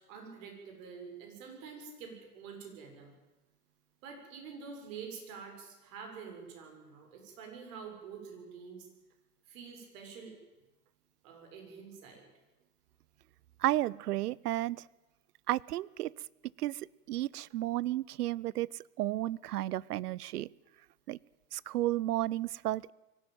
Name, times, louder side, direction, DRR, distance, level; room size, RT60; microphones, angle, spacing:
voice 1, 0.1-3.1 4.0-8.9 9.5-10.3 11.2-12.2, right 6 dB, 55° right, 3 dB, 6.7 m, -47 dB
voice 2, 13.6-14.8 15.5-16.1 16.6-18.7 19.0-20.5 21.1-21.2 21.5-22.9, right 15 dB, 70° right, 26 dB, 0.6 m, -32 dB
24.0 x 12.5 x 9.2 m, 1.1 s
hypercardioid pair, 115°, 47 cm